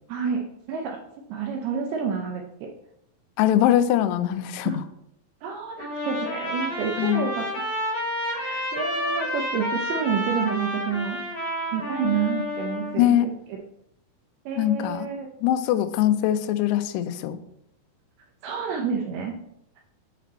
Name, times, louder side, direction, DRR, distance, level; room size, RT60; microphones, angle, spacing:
voice 1, 0.1-1.0 1.3-2.7 4.7-4.8 5.4-7.5 8.3-11.2 11.7-13.6 14.5-15.3 18.4-19.3, right 6 dB, 85° right, 2 dB, 2.2 m, -29 dB
voice 2, 3.4-4.8 7.0-7.2 13.0-13.3 14.6-15.1 15.4-17.4, left 12 dB, 85° left, 9 dB, 2.4 m, -22 dB
Trumpet, 5.8-12.9, left 1 dB, 55° left, 3.2 m, -30 dB
8.3 x 4.2 x 4.1 m, 0.78 s
omnidirectional pair, 5.3 m